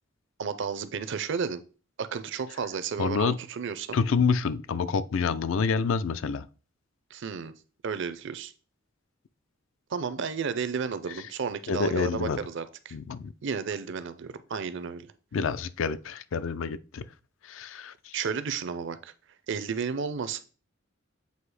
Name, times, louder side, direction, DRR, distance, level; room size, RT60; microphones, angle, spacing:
voice 1, 0.4-1.6 2.0-4.0 7.1-7.5 7.8-8.5 9.9-13.0 13.4-15.1 18.1-19.1 19.5-20.4, right 6 dB, 60° right, 0.5 m, -32 dB
voice 2, 3.0-3.4 3.9-6.5 11.7-12.4 12.9-13.3 15.3-17.0 17.4-18.2, left 5 dB, 65° left, 0.4 m, -28 dB
7.9 x 2.8 x 4.8 m
head